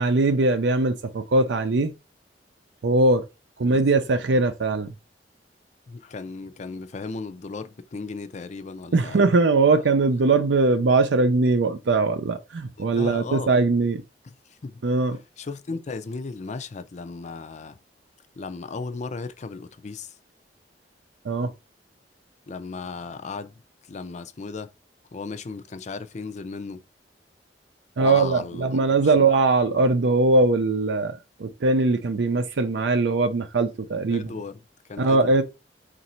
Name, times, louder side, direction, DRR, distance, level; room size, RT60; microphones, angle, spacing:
voice 1, 0.0-1.9 2.8-3.3 3.6-4.9 8.9-14.0 14.8-15.2 21.2-21.5 28.0-34.3 35.0-35.4, right 3 dB, 90° right, 0.5 m, -21 dB
voice 2, 5.9-9.2 12.9-13.5 14.2-14.8 15.4-17.8 18.4-20.1 22.5-23.6 23.9-24.7 25.1-26.8 28.0-28.7 29.0-29.2 34.1-34.6 34.9-35.4, left 4 dB, 40° left, 0.5 m, -35 dB
4.0 x 2.6 x 4.2 m
head